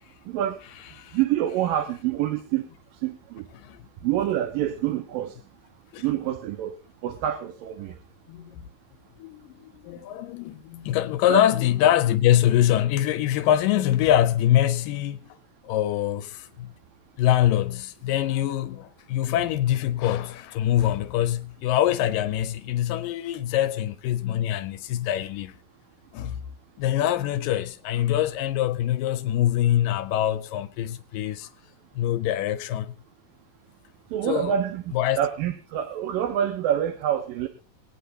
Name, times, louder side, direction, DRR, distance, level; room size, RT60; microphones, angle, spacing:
voice 1, 0.3-0.6 1.1-3.5 4.0-5.4 6.0-6.8 7.0-8.0 11.3-11.4 34.1-37.5, right 11 dB, 85° right, 2.9 m, -27 dB
voice 2, 8.3-8.7 9.2-15.2 15.6-16.7 17.2-25.5 26.1-26.4 26.8-31.5 32.0-32.9 34.3-34.5 34.9-35.2, left 12 dB, 85° left, 2.4 m, -24 dB
25.5 x 9.4 x 2.6 m
omnidirectional pair, 3.9 m